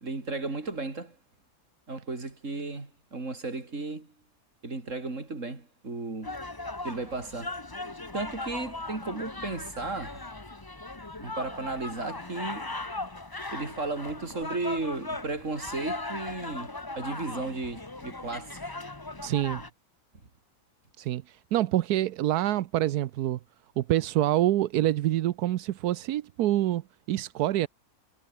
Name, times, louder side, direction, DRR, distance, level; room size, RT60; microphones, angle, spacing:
voice 1, 0.0-1.2 1.9-4.1 4.6-6.3 6.8-7.6 8.1-10.3 11.2-12.7 13.5-18.6, right 3 dB, 50° right, 4.0 m, -34 dB
sound 1, 6.2-19.7, left 2 dB, 15° left, 1.2 m, -38 dB
voice 2, 19.2-19.6 21.0-23.4 23.8-27.7, right 13 dB, 85° right, 1.2 m, -26 dB
omnidirectional pair, 1.6 m